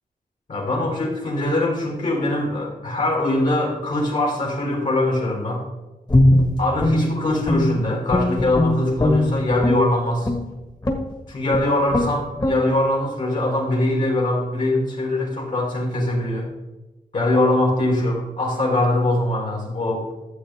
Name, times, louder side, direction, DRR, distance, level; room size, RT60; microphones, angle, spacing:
voice 1, 0.5-5.6 6.6-10.4 11.3-16.5 17.1-20.1, left 1 dB, 55° left, -3 dB, 2.8 m, -22 dB
Guitar, 6.1-7.8 8.1-9.8 10.2-10.5 10.8-11.1 11.5-11.6 11.9-12.1 12.4-12.6, left 1 dB, 25° left, 1.6 m, -19 dB
12.5 x 7.8 x 3.6 m, 1.1 s
wide cardioid pair, 125°, 15 cm